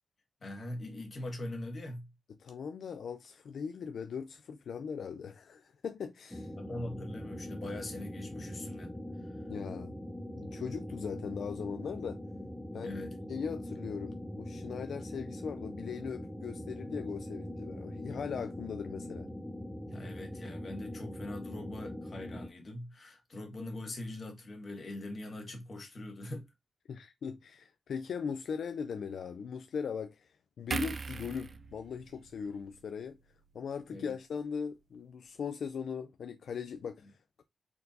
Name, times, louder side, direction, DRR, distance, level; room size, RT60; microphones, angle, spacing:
voice 1, 0.4-2.1 6.6-9.5 12.8-13.1 19.9-26.5 33.9-34.1, left 1 dB, 45° left, 1.6 m, -42 dB
voice 2, 2.4-6.5 9.5-9.9 10.4-12.2 12.7-13.0 13.3-19.3 26.9-33.2 33.5-37.4, left 6 dB, 80° left, 0.4 m, -39 dB
sound 1, 6.3-22.5, left 1 dB, ahead, 0.6 m, -42 dB
sound 2, 30.7-34.1 34.4-34.6, right 4 dB, 50° right, 0.3 m, -41 dB
4.3 x 4.1 x 2.6 m
cardioid pair, 85°, 0 cm